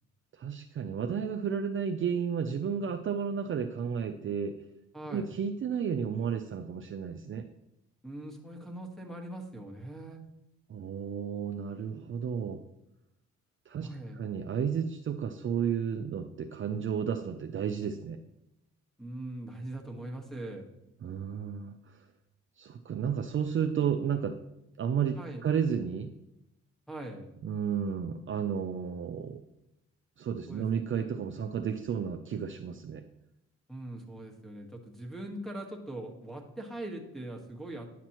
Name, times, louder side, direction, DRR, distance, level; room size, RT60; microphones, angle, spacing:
voice 1, 0.3-4.6 5.1-7.4 10.7-12.6 13.7-13.9 14.1-18.2 21.0-22.0 22.6-24.4 24.8-26.1 27.4-29.4 30.2-33.0, right 7 dB, 40° right, 6 dB, 0.5 m, -32 dB
voice 2, 4.9-5.3 8.0-10.2 13.8-14.2 19.0-20.6 25.2-25.4 26.9-27.3 30.5-30.7 33.7-37.9, right 1 dB, ahead, 3 dB, 1.4 m, -41 dB
10.0 x 6.0 x 3.0 m, 0.87 s
cardioid pair, 90°, 30 cm